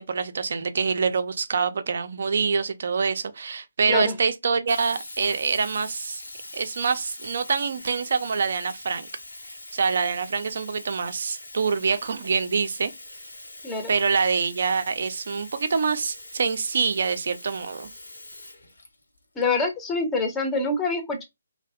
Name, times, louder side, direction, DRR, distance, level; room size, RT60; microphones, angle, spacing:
voice 1, 0.0-6.2 6.5-9.1 9.7-12.9 13.9-17.9, right 5 dB, 50° right, 0.4 m, -25 dB
Sink (filling or washing), 4.7-19.4, left 2 dB, 65° left, 0.7 m, -43 dB
voice 2, 19.4-21.2, left 3 dB, 10° left, 0.6 m, -26 dB
2.5 x 2.0 x 2.3 m
figure-of-eight pair, 140°, 0 cm